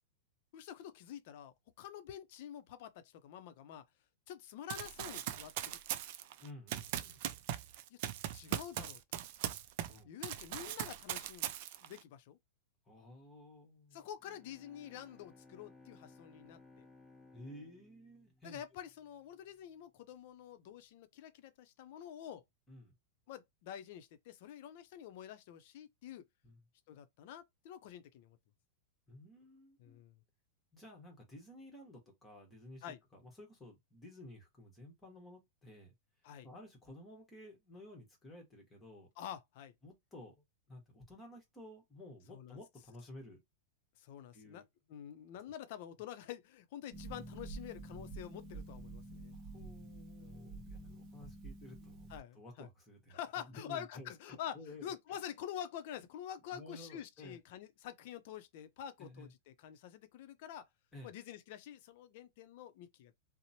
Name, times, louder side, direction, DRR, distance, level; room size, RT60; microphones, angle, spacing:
voice 1, 0.5-3.8 4.3-5.8 7.9-8.0 8.3-9.0 10.0-11.5 11.8-12.4 13.9-16.9 18.4-22.4 23.3-26.3 26.9-28.4 29.8-30.2 32.8-33.0 36.2-36.5 39.2-39.7 42.3-42.6 44.0-44.6 44.9-49.4 50.2-51.0 52.1-52.7 53.1-60.7 61.0-63.1, left 10 dB, 60° left, 0.5 m, -48 dB
Run, 4.7-10.0 10.2-12.0, right 12 dB, 55° right, 0.3 m, -40 dB
voice 2, 6.4-7.2 9.8-10.1 12.9-14.0 17.3-18.6 22.7-22.9 26.4-26.6 29.1-30.0 30.7-32.9 33.1-35.9 36.4-39.1 39.8-43.4 44.3-44.6 45.4-45.5 49.3-55.0 56.5-57.4 59.0-59.3 60.9-61.1, left 1 dB, 15° left, 1.1 m, -54 dB
Bowed string instrument, 14.2-19.2, left 3 dB, ahead, 0.7 m, -61 dB
Harp, 46.9-52.2, right 3 dB, 35° right, 0.8 m, -48 dB
2.8 x 2.0 x 2.7 m
hypercardioid pair, 135°, 0 cm